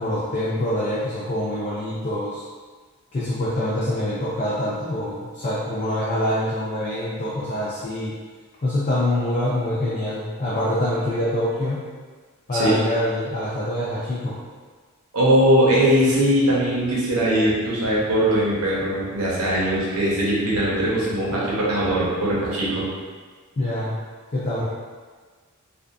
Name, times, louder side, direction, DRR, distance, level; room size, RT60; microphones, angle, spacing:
voice 1, 0.0-2.4 3.1-8.2 8.6-11.9 12.5-14.4 23.6-23.9 24.3-24.6, left 1 dB, 35° left, -8 dB, 0.4 m, -25 dB
voice 2, 15.1-22.9, equal, 80° right, -6 dB, 0.8 m, -20 dB
2.6 x 2.3 x 2.3 m, 1.5 s
head